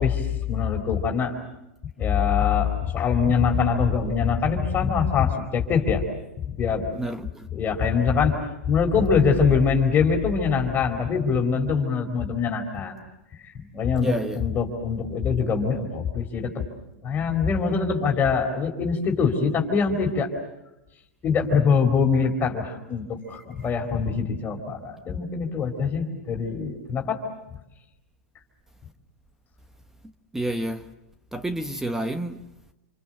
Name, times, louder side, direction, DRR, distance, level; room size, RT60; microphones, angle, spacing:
voice 1, 0.0-1.3 2.0-6.0 6.6-6.9 7.5-12.9 13.4-16.6 17.0-20.3 21.2-27.2, left 6 dB, 25° left, 4.3 m, -23 dB
voice 2, 6.9-7.5 14.0-14.4 23.3-23.4 30.3-30.9 31.3-32.4, right 1 dB, 5° right, 1.2 m, -30 dB
28.0 x 27.5 x 7.7 m
hypercardioid pair, 115°, 7 cm